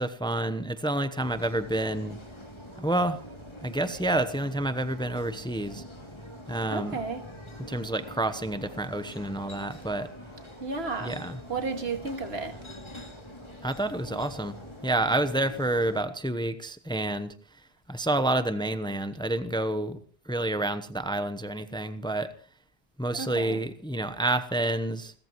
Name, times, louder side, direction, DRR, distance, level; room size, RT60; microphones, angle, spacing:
voice 1, 0.0-2.2 2.8-3.2 3.6-5.8 6.5-7.0 7.6-10.1 11.0-11.4 13.6-14.5 14.8-17.3 17.9-20.0 20.3-22.3 23.0-25.1, right 1 dB, 5° left, 11 dB, 0.9 m, -29 dB
sound 1, 1.2-16.0, equal, 25° left, 2.8 m, -45 dB
voice 2, 6.7-7.2 10.6-11.1 11.5-12.5 23.1-23.6, right 4 dB, 80° right, 6 dB, 2.3 m, -32 dB
29.5 x 14.0 x 3.1 m, 0.42 s
omnidirectional pair, 1.0 m